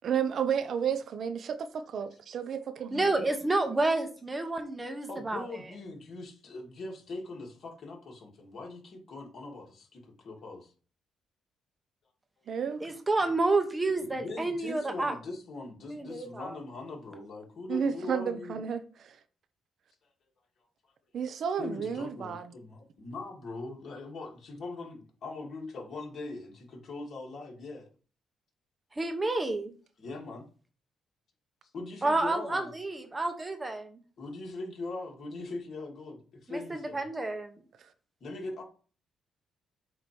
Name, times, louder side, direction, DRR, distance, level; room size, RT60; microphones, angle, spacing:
voice 1, 0.0-3.1 12.5-12.8 17.7-19.2 21.1-22.5, right 7 dB, 60° right, 0.7 m, -32 dB
voice 2, 2.9-5.4 12.8-15.2 15.9-16.6 28.9-29.7 32.0-34.0 36.5-37.5, right 2 dB, 20° right, 1.0 m, -29 dB
voice 3, 5.1-10.7 14.1-18.6 21.6-27.9 30.0-30.4 31.7-32.7 34.2-37.0 38.2-38.6, left 2 dB, 55° left, 2.4 m, -41 dB
7.8 x 3.0 x 5.3 m
cardioid pair, 90°, 0 cm